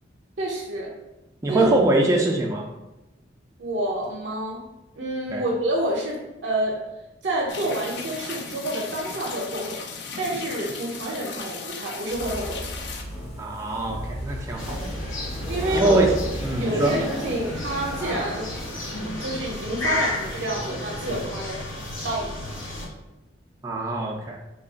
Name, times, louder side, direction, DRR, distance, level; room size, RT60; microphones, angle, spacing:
voice 1, 0.4-0.9 1.5-1.7 3.6-4.6 5.0-6.8 7.2-9.8 10.2-12.7 15.5-16.0 16.6-18.5 19.2-21.6 22.0-22.4, right 1 dB, 70° right, -3 dB, 0.5 m, -28 dB
voice 2, 1.4-2.7 5.3-5.4 13.4-14.8 15.7-16.1 16.4-16.9 23.6-24.4, right 2 dB, 15° right, -2 dB, 0.3 m, -23 dB
sound 1, 7.5-13.0, left 5 dB, 60° left, 0.4 m, -36 dB
sound 2, 12.1-19.0, equal, 35° left, 0.7 m, -36 dB
sound 3, 14.6-22.9, left 1 dB, 85° left, 0.7 m, -31 dB
3.2 x 2.3 x 3.8 m, 0.99 s
head